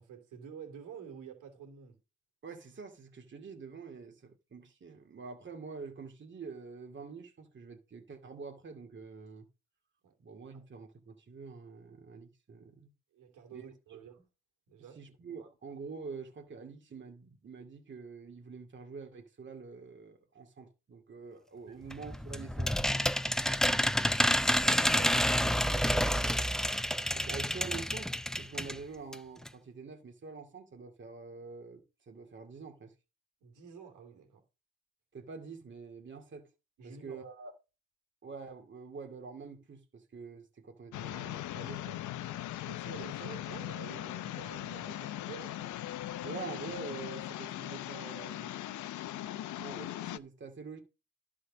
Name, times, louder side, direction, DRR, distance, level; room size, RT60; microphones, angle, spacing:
voice 1, 0.0-2.0 10.0-10.1 10.5-10.6 13.1-14.2 14.7-15.0 15.4-15.5 21.7-21.8 24.5-26.5 33.4-34.4 36.8-37.2 42.7-45.7, right 7 dB, 85° right, 2.8 m, -50 dB
voice 2, 2.4-9.5 10.2-12.9 13.5-13.6 13.9-14.0 15.0-23.0 27.1-32.9 35.1-36.5 36.8-37.5 38.2-42.3 46.2-48.6 49.5-50.8, right 5 dB, 40° right, 2.3 m, -46 dB
sound 1, 21.9-28.8 29.1-29.2 29.4-29.5, equal, ahead, 0.5 m, -29 dB
sound 2, 40.9-50.2, left 14 dB, 75° left, 0.7 m, -39 dB
11.5 x 4.8 x 6.2 m
cardioid pair, 90°, 30 cm